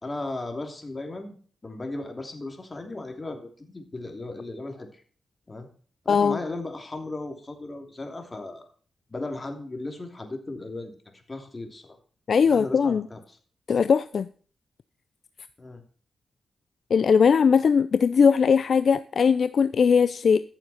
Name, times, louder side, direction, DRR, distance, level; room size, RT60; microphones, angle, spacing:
voice 1, 0.0-1.3 1.6-4.9 5.5-5.7 6.0-8.6 9.1-11.0 11.3-12.0 12.4-13.4 15.6-15.8, left 2 dB, 30° left, 5 dB, 3.0 m, -36 dB
voice 2, 6.1-6.4 12.3-13.1 13.7-14.3 16.9-20.4, left 6 dB, 65° left, 14 dB, 0.4 m, -20 dB
14.5 x 7.2 x 4.3 m, 0.43 s
cardioid pair, 70°, 0 cm